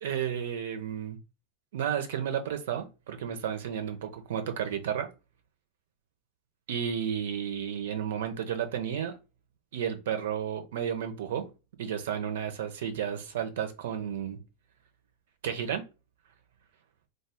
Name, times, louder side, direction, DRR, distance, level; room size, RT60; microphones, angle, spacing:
voice 1, 0.0-1.2 1.7-5.1 6.7-9.1 9.7-11.4 11.8-14.4 15.4-15.8, right 8 dB, 55° right, 0.7 m, -32 dB
3.9 x 2.5 x 3.4 m
figure-of-eight pair, 90°, 0 cm